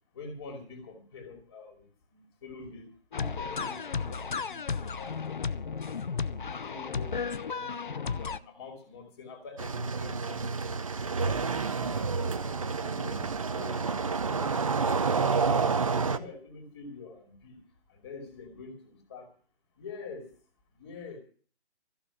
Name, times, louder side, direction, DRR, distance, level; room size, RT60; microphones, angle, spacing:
voice 1, 0.1-1.8 2.1-5.2 5.6-6.0 6.4-7.8 8.1-10.8 11.2-12.5 12.8-13.3 13.6-17.6 17.9-18.8 19.1-19.2 19.8-20.3 20.8-21.2, left 4 dB, 20° left, 4 dB, 2.8 m, -46 dB
sound 1, 3.1-8.4, left 5 dB, 45° left, 0.7 m, -34 dB
sound 2, 9.6-16.2, right 4 dB, 30° right, 0.8 m, -29 dB
14.5 x 6.9 x 9.7 m, 0.41 s
figure-of-eight pair, 165°, 34 cm